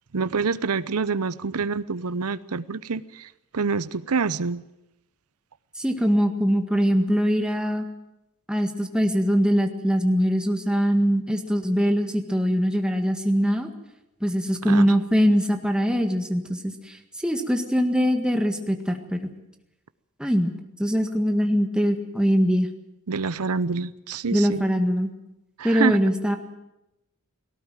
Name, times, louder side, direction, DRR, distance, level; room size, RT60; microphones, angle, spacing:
voice 1, 0.1-4.6 14.7-14.9 23.1-24.6 25.6-26.0, right 5 dB, 80° right, 16 dB, 0.7 m, -27 dB
voice 2, 5.8-7.9 8.5-13.7 14.2-17.0 17.2-19.3 20.2-20.5 20.8-22.7 24.3-25.1 25.6-26.4, equal, 5° right, 5 dB, 1.7 m, -22 dB
18.5 x 17.5 x 9.1 m, 0.91 s
head